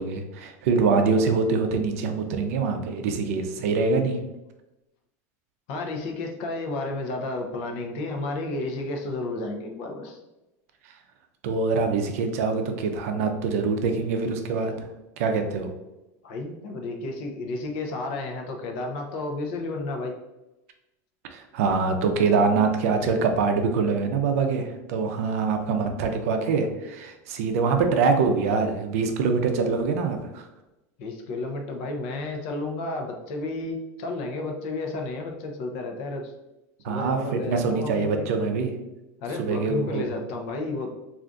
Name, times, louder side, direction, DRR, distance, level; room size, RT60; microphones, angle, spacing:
voice 1, 0.0-4.2 10.8-11.0 11.4-14.9 15.2-15.7 21.3-30.5 36.8-38.7 39.4-40.1, right 4 dB, 65° right, 5 dB, 0.5 m, -24 dB
voice 2, 5.7-10.2 16.2-20.2 31.0-36.3 36.9-38.2 39.2-40.9, left 2 dB, 50° left, 2 dB, 0.5 m, -32 dB
2.5 x 2.3 x 3.7 m, 0.98 s
supercardioid pair, 175°, 8 cm